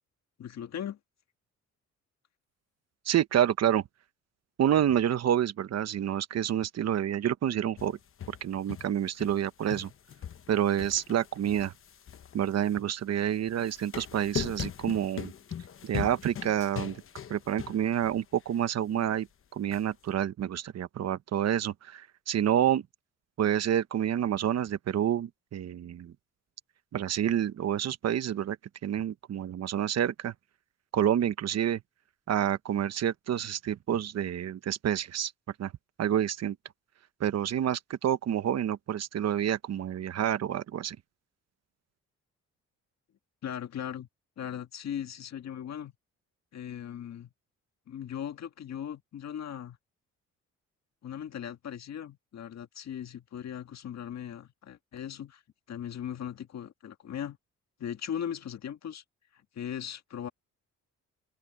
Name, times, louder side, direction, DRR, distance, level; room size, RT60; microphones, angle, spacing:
voice 1, 0.4-1.0 43.4-44.1 44.4-45.9 46.5-47.3 47.9-49.8 51.0-55.4 55.7-57.4 57.8-59.0 59.3-60.3, left 9 dB, 60° left, 2.0 m, -38 dB
voice 2, 3.1-3.8 4.6-8.0 8.3-9.9 10.5-11.7 12.3-15.3 15.8-17.0 17.3-22.8 23.4-26.1 26.9-28.6 28.8-30.3 30.9-31.8 32.3-35.3 35.6-35.7 36.0-36.6 37.2-41.0, right 10 dB, 60° right, 1.1 m, -28 dB
sound 1, 7.8-9.4 9.7-12.8 13.5-18.2 18.6-18.7 19.7-19.8, left 8 dB, 45° left, 1.1 m, -40 dB
open air
cardioid pair, 90°, 30 cm